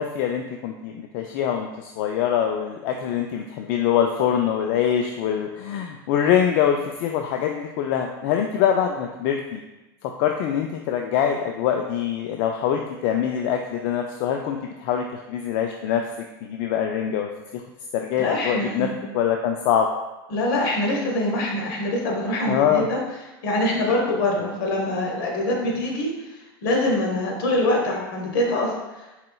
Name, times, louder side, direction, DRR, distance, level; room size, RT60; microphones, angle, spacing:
voice 1, 0.0-9.6 10.0-17.6 17.9-18.9 19.1-19.9 22.5-22.9, left 9 dB, 60° left, 3 dB, 0.4 m, -24 dB
voice 2, 18.2-18.9 20.3-23.0 23.4-26.1 26.6-28.7, left 1 dB, 75° left, -1 dB, 1.1 m, -24 dB
4.3 x 3.7 x 2.3 m, 1.1 s
supercardioid pair, 110°, 12 cm